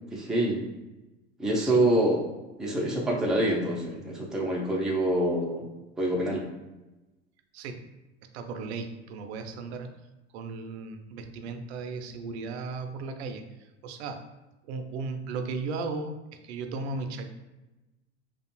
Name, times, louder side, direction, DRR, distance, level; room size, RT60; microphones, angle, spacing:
voice 1, 0.1-0.6 1.4-2.2 2.6-5.7 6.0-6.5, right 1 dB, ahead, -2 dB, 0.3 m, -26 dB
voice 2, 8.3-9.9 10.3-14.2 14.7-17.3, right 4 dB, 65° right, 7 dB, 0.5 m, -36 dB
2.4 x 2.1 x 2.9 m, 1.0 s
hypercardioid pair, 85°, 35 cm